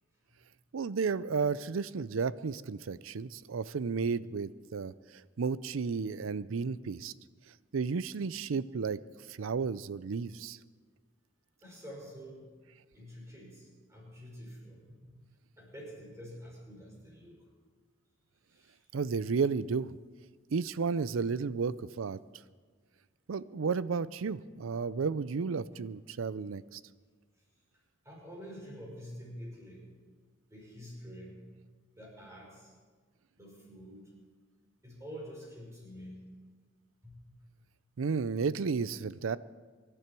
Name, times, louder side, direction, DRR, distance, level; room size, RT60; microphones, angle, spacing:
voice 1, 0.7-7.1 7.7-9.0 9.3-10.6 18.9-20.0 20.5-22.2 23.3-26.8 38.0-39.4, right 5 dB, 80° right, 18 dB, 0.5 m, -33 dB
voice 2, 11.6-12.5 12.9-15.1 15.6-17.5 18.5-18.8 28.0-29.9 30.5-31.5 32.0-32.7 33.4-34.1 34.8-36.3 37.0-37.2, equal, 15° right, -3 dB, 5.7 m, -47 dB
24.0 x 12.5 x 4.6 m, 1.5 s
head